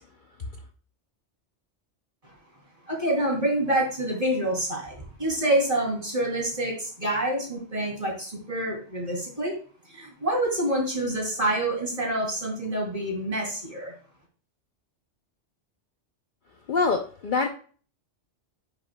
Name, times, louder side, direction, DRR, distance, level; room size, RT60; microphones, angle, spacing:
voice 1, 2.9-9.6 9.9-13.9, right 1 dB, 30° right, -2 dB, 3.0 m, -27 dB
voice 2, 16.7-17.5, left 4 dB, 50° left, 4 dB, 0.7 m, -24 dB
9.7 x 6.0 x 2.2 m, 0.41 s
omnidirectional pair, 1.2 m